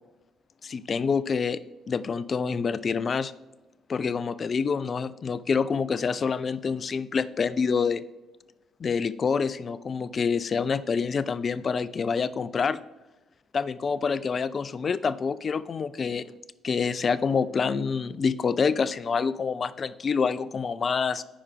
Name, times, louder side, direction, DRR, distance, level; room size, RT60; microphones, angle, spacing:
voice 1, 0.6-1.6 1.9-3.3 3.9-8.0 8.8-12.8 13.5-16.2 16.6-21.2, left 5 dB, 45° left, 17 dB, 0.4 m, -27 dB
10.0 x 4.8 x 3.4 m, 1.1 s
hypercardioid pair, 50°, 0 cm